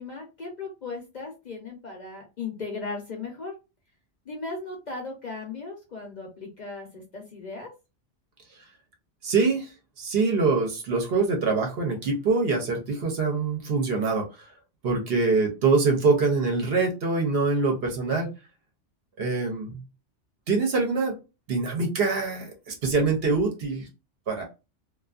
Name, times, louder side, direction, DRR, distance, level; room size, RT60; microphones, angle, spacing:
voice 1, 0.0-3.5 4.3-7.7, left 3 dB, 50° left, 0 dB, 0.6 m, -37 dB
voice 2, 9.2-14.5 14.8-18.3 19.2-19.8 20.5-21.1 21.5-23.9 24.3-24.4, right 4 dB, 60° right, 2 dB, 0.8 m, -24 dB
2.5 x 2.4 x 2.3 m, 0.28 s
omnidirectional pair, 1.2 m